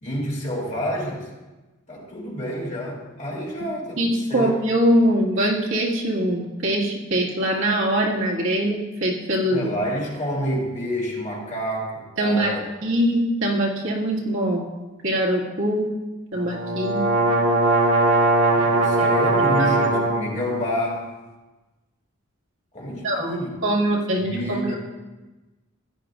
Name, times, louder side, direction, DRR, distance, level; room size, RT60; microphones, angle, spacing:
voice 1, 0.0-1.3 1.9-4.0 4.3-4.5 9.5-12.6 18.5-21.1 22.7-23.6 24.2-24.8, equal, 35° left, -2 dB, 2.5 m, -28 dB
voice 2, 4.0-9.7 12.2-14.6 15.0-15.9 16.3-17.0 19.6-19.7 23.0-24.8, right 1 dB, 65° right, -3 dB, 2.0 m, -23 dB
sound 1, 16.4-20.3, right 2 dB, 90° right, 1.7 m, -20 dB
15.5 x 10.5 x 2.5 m, 1.1 s
head